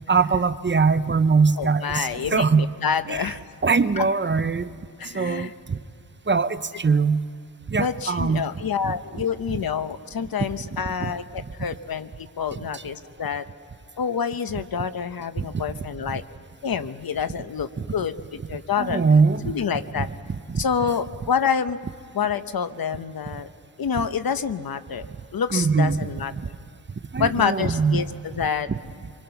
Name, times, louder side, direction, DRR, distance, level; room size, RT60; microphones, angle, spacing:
voice 1, 0.1-2.7 3.1-3.3 3.6-4.7 5.1-5.8 6.3-7.2 7.7-8.5 8.8-8.9 11.0-11.1 11.4-11.5 12.7-12.8 15.4-15.5 17.8-17.9 18.8-19.5 20.0-20.1 20.5-20.6 25.5-26.1 27.1-28.0, right 5 dB, 30° right, 12 dB, 0.6 m, -22 dB
voice 2, 1.6-3.4 4.0-4.1 5.0-5.5 7.8-13.4 14.0-16.2 16.6-19.0 19.4-20.1 20.6-21.8 22.1-23.5 23.8-25.1 25.3-26.3 27.2-28.7, left 7 dB, 75° left, 11 dB, 0.9 m, -27 dB
25.0 x 23.5 x 5.8 m, 2.5 s
wide cardioid pair, 90°, 36 cm